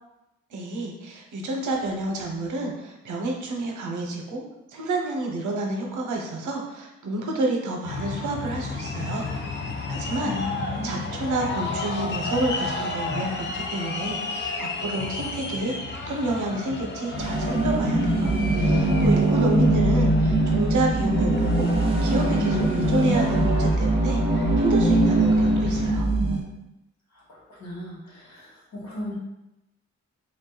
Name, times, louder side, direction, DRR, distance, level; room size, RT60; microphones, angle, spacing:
voice 1, 0.5-4.4 4.7-9.3 9.9-10.3 10.8-21.7 22.0-24.2 24.6-26.1, right 2 dB, 85° right, 1 dB, 0.8 m, -29 dB
sound 1, 7.8-25.9, left 3 dB, 40° left, 0.5 m, -33 dB
voice 2, 10.2-10.9 19.5-19.8 27.1-29.1, left 1 dB, 65° left, -5 dB, 1.4 m, -37 dB
sound 2, 17.2-26.4, right 1 dB, 20° right, 0.5 m, -21 dB
3.5 x 2.6 x 3.8 m, 0.91 s
wide cardioid pair, 155°, 30 cm